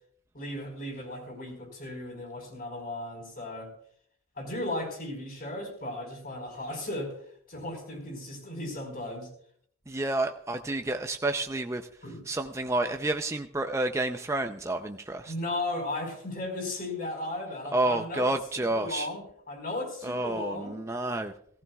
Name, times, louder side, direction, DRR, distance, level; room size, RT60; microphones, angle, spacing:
voice 1, 0.3-3.7 4.4-7.2 7.5-9.3 12.0-12.3 15.3-20.8, left 1 dB, 45° left, 2 dB, 4.5 m, -36 dB
voice 2, 9.9-11.9 12.3-15.3 17.7-19.1 20.0-21.3, right 2 dB, 15° right, 5 dB, 0.5 m, -30 dB
18.0 x 15.0 x 2.3 m, 0.63 s
head